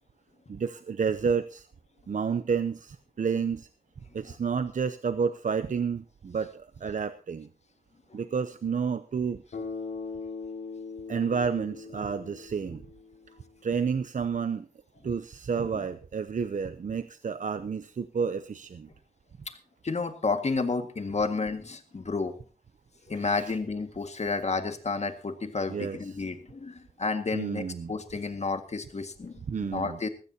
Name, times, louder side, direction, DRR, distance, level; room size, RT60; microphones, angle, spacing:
voice 1, 0.5-1.7 2.1-3.7 4.1-7.5 8.1-9.4 11.1-12.8 13.6-14.7 15.0-18.9 23.1-23.6 25.7-26.1 27.3-27.9 29.5-30.0, right 6 dB, 60° right, 12 dB, 0.7 m, -30 dB
Bass guitar, 9.5-13.5, left 4 dB, 85° left, 5.5 m, -40 dB
voice 2, 19.8-22.4 23.1-30.1, left 4 dB, 50° left, 7 dB, 1.8 m, -31 dB
19.5 x 15.5 x 2.8 m, 0.37 s
wide cardioid pair, 120°, 15 cm